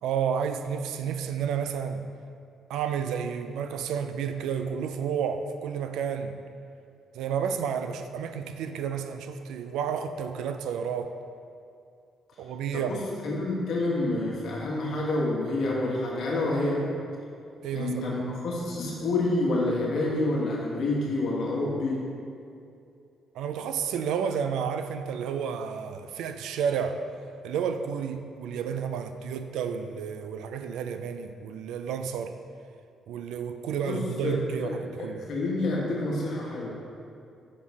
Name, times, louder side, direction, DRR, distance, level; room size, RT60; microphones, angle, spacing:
voice 1, 0.0-2.0 2.7-6.3 7.1-11.1 12.4-13.0 17.6-18.1 23.3-27.0 27.4-32.3 33.1-35.3, right 7 dB, 90° right, 8 dB, 0.4 m, -31 dB
voice 2, 12.7-16.9 17.7-22.1 33.8-34.7 35.0-36.7, left 2 dB, 70° left, -4 dB, 1.4 m, -28 dB
6.3 x 3.9 x 4.7 m, 2.5 s
cardioid pair, 90°, 0 cm